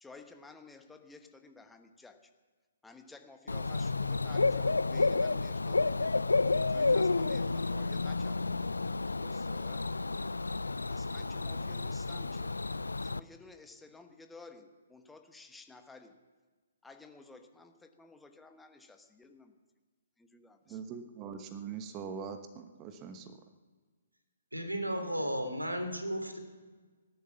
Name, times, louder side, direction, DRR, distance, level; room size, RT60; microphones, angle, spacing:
voice 1, 0.0-2.3 2.8-6.2 6.7-8.4 9.1-9.9 10.9-12.6 13.0-16.2 16.8-19.5 20.2-20.8, left 3 dB, 5° left, 6 dB, 1.2 m, -54 dB
Bird / Cricket, 3.5-13.2, left 3 dB, 75° left, 0.4 m, -31 dB
voice 2, 20.7-23.4, right 6 dB, 25° right, 8 dB, 1.2 m, -42 dB
voice 3, 24.5-26.4, equal, 85° right, 6 dB, 3.1 m, -34 dB
16.5 x 12.5 x 7.2 m, 1.4 s
figure-of-eight pair, 130°, 0 cm